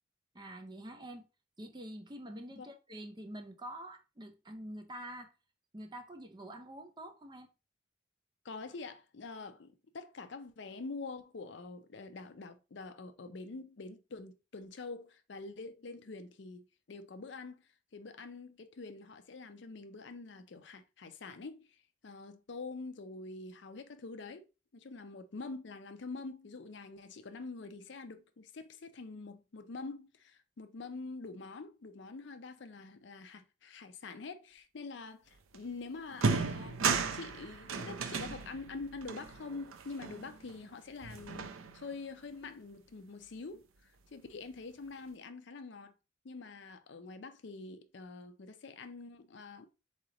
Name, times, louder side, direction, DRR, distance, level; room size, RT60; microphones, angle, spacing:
voice 1, 0.3-1.3 1.6-5.3 5.7-7.5, right 1 dB, 20° right, 0.5 m, -46 dB
voice 2, 8.4-24.5 24.7-43.7 44.1-45.9 46.2-49.7, left 3 dB, 60° left, 0.5 m, -46 dB
sound 1, 35.5-35.7 36.1-40.7 41.0-42.0, right 5 dB, 85° right, 0.5 m, -35 dB
3.8 x 3.2 x 3.8 m
head